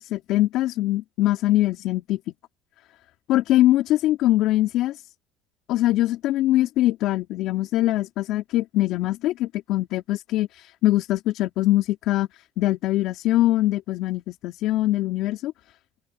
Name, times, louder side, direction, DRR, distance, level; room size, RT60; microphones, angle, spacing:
voice 1, 0.0-2.2 3.3-5.0 5.7-12.3 12.6-15.5, left 15 dB, 65° left, 3.5 m, -22 dB
open air
supercardioid pair, 105°, 0 cm